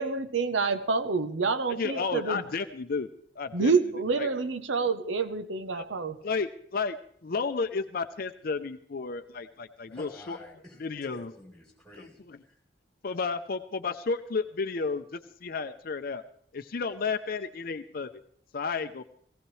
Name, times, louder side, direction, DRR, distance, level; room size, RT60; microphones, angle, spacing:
voice 1, 0.0-2.4 3.5-6.2, right 4 dB, 85° right, 10 dB, 0.8 m, -27 dB
voice 2, 1.7-3.1 3.4-3.7 4.2-4.3 5.7-5.9 6.2-7.0 7.2-10.4 10.8-11.3 12.0-12.4 13.0-16.2 16.5-18.1 18.5-19.0, left 4 dB, 50° left, 9 dB, 0.5 m, -32 dB
voice 3, 9.9-10.8 11.1-12.2, left 1 dB, 5° left, -1 dB, 3.6 m, -49 dB
18.5 x 16.5 x 3.2 m, 0.63 s
head